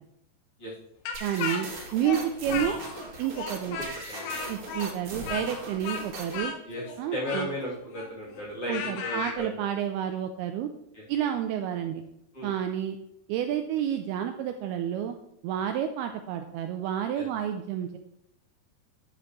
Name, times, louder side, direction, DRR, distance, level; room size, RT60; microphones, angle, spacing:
Speech, 1.1-3.1 3.3-9.4, left 5 dB, 75° left, 3.1 m, -35 dB
sound 1, 1.1-6.5, right 2 dB, 45° right, 2.2 m, -40 dB
voice 1, 1.2-1.7 1.9-2.8 3.2-3.8 4.5-6.5 7.0-7.5 8.7-10.7 11.1-12.0 12.4-13.0 13.3-15.2 15.4-18.0, right 9 dB, 85° right, 6 dB, 2.3 m, -30 dB
voice 2, 4.1-4.5 6.7-6.8 7.1-9.7 10.9-11.0 12.3-12.5 17.2-17.3, left 1 dB, 35° left, -5 dB, 3.6 m, -35 dB
11.5 x 7.0 x 3.1 m, 0.80 s
omnidirectional pair, 4.9 m